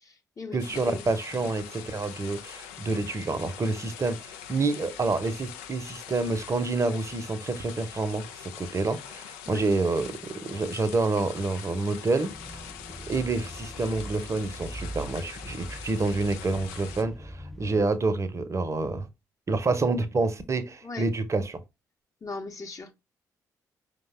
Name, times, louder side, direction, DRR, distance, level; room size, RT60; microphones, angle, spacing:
voice 1, 0.0-1.0 9.5-9.6 20.8-21.1 22.2-22.9, left 3 dB, 40° left, 0.8 m, -39 dB
voice 2, 0.5-12.7 13.1-19.1 19.5-21.6, right 3 dB, 35° right, 0.7 m, -28 dB
sound 1, 0.6-17.0, left 9 dB, 75° left, 0.4 m, -43 dB
sound 2, 12.2-17.8, equal, ahead, 0.4 m, -41 dB
5.1 x 2.2 x 3.3 m
figure-of-eight pair, 40°, 9 cm